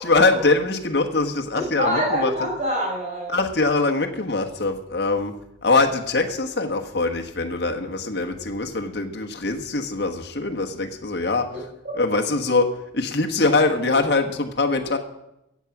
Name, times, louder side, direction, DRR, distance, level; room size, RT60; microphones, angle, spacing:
voice 1, 0.0-2.3 3.3-5.3 5.6-11.5 12.0-12.7 12.9-15.0, left 3 dB, 60° left, 3 dB, 1.3 m, -22 dB
voice 2, 1.5-3.3 11.5-11.9, equal, 35° right, -1 dB, 5.0 m, -26 dB
15.0 x 8.3 x 5.9 m, 0.85 s
head